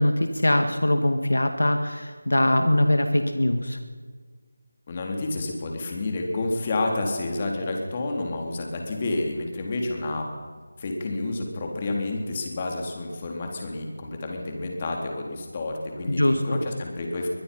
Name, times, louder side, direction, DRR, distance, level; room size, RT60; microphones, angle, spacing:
voice 1, 0.0-3.8 16.1-16.6, left 1 dB, 75° left, 7 dB, 2.0 m, -22 dB
voice 2, 4.9-10.2 10.8-17.3, left 2 dB, 30° left, 1 dB, 3.9 m, -29 dB
23.5 x 20.0 x 5.6 m, 1.5 s
figure-of-eight pair, 165°, 0 cm